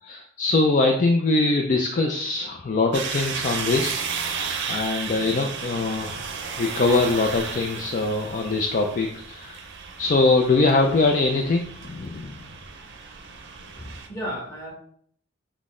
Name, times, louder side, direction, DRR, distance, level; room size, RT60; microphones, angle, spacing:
voice 1, 0.0-4.0 4.7-6.2 6.6-9.6 10.0-12.4, left 3 dB, 40° left, 2 dB, 0.4 m, -22 dB
sound 1, 2.9-14.1, right 5 dB, 55° right, 0.6 m, -34 dB
voice 2, 13.5-14.7, equal, 15° left, -5 dB, 1.8 m, -34 dB
5.9 x 2.1 x 3.6 m, 0.62 s
head